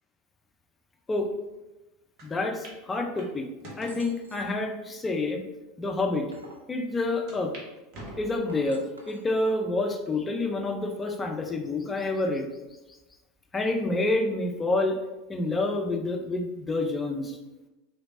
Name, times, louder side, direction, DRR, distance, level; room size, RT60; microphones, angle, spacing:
voice 1, 2.2-3.5 3.8-5.4 5.8-6.3 6.7-7.5 8.2-12.5 13.5-15.0 15.3-17.4, left 2 dB, 20° left, 3 dB, 0.6 m, -28 dB
sound 1, 2.2-2.3 2.6-2.8 3.2-4.0 4.7-4.8 5.5-5.6 5.9-6.0 7.3-7.7 7.9-8.7 9.2-9.7 10.2-10.3 11.5-11.9, right 1 dB, 50° right, 1.0 m, -45 dB
sound 2, 3.8-4.6 5.9-6.7 8.3-9.3, right 2 dB, 85° right, 0.5 m, -50 dB
4.0 x 3.2 x 2.6 m, 1.0 s
figure-of-eight pair, 80°, 0 cm